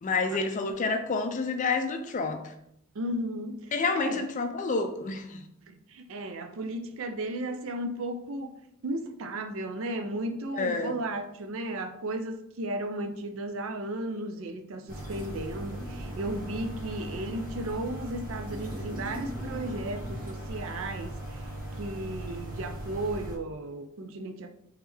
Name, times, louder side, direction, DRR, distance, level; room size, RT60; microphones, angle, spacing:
voice 1, 0.0-2.5 3.7-5.4 10.5-10.9, left 4 dB, 35° left, 0.4 m, -29 dB
voice 2, 2.9-4.2 5.7-8.6 8.8-24.5, right 1 dB, 65° right, 0.4 m, -35 dB
sound 1, 14.9-23.4, right 1 dB, 40° right, 1.0 m, -38 dB
3.4 x 3.1 x 3.4 m
head